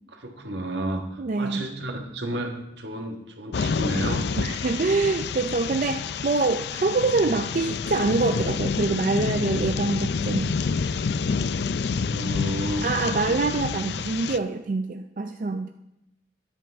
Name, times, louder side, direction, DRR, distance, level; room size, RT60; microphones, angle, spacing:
voice 1, 0.1-4.3 12.0-13.5, right 1 dB, 70° right, 3 dB, 1.5 m, -32 dB
voice 2, 1.2-1.6 4.4-10.6 12.8-15.7, right 3 dB, 45° right, 7 dB, 0.4 m, -25 dB
sound 1, 3.5-14.4, left 5 dB, 65° left, 0.4 m, -28 dB
13.0 x 10.5 x 3.5 m, 0.88 s
head